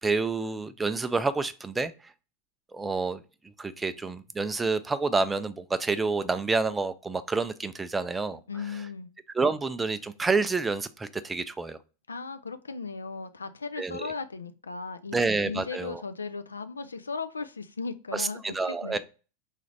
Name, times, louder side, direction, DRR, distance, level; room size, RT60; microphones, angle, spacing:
voice 1, 0.0-2.1 2.7-3.2 3.6-8.4 9.3-11.8 13.8-14.1 15.1-16.0 18.1-19.0, right 4 dB, 10° right, 0.3 m, -28 dB
voice 2, 8.5-9.1 12.1-15.2 15.4-18.4 18.7-19.0, left 4 dB, 80° left, 0.3 m, -36 dB
3.9 x 2.4 x 3.1 m
figure-of-eight pair, 90°, 0 cm